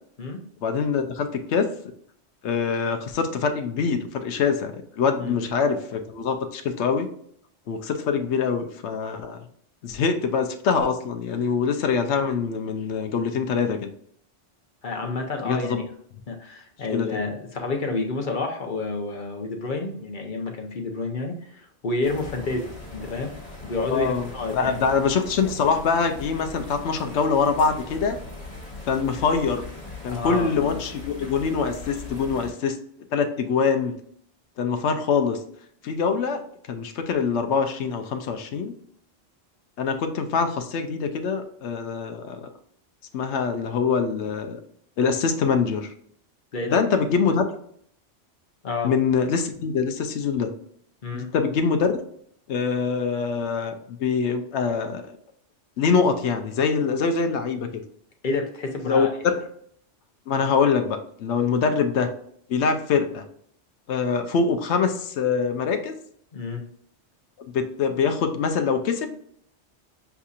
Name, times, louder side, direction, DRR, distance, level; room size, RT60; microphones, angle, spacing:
voice 1, 0.6-1.7 2.4-7.1 7.7-9.4 9.8-13.9 15.4-15.8 16.9-17.3 23.9-24.3 24.5-28.2 28.9-29.6 30.0-32.8 33.1-33.9 34.6-35.4 35.8-36.4 36.7-38.7 39.8-42.5 43.1-44.6 45.0-45.9 46.6-47.5 48.8-50.5 51.1-51.9 52.5-55.0 55.8-57.8 58.9-59.4 60.3-62.1 62.5-63.2 63.9-66.0 67.5-69.1, left 5 dB, 75° left, 7 dB, 0.9 m, -24 dB
voice 2, 5.2-5.5 14.8-15.8 16.3-23.3 23.6-24.8 30.1-30.8 46.5-46.8 48.6-48.9 51.0-51.3 58.2-59.1 66.3-66.6, left 3 dB, 50° left, 3 dB, 0.9 m, -29 dB
sound 1, 22.0-32.5, left 3 dB, 25° left, 1.5 m, -40 dB
6.9 x 2.7 x 2.4 m, 0.65 s
omnidirectional pair, 1.2 m